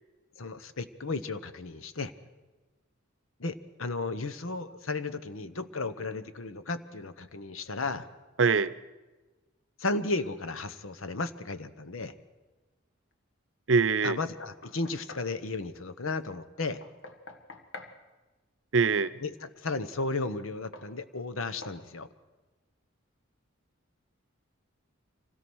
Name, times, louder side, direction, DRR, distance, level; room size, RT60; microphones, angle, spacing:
voice 1, 0.4-2.1 3.4-8.1 9.8-12.1 14.0-16.8 19.2-22.1, left 3 dB, 85° left, 12 dB, 1.1 m, -34 dB
voice 2, 8.4-8.7 13.7-14.2 18.7-19.1, right 5 dB, 65° right, 15 dB, 0.7 m, -23 dB
Knock, 14.2-15.3 16.8-18.0 20.0-20.2 20.7-20.9 21.6-21.8, left 3 dB, 65° left, 1.6 m, -47 dB
25.0 x 17.0 x 6.3 m, 1.2 s
head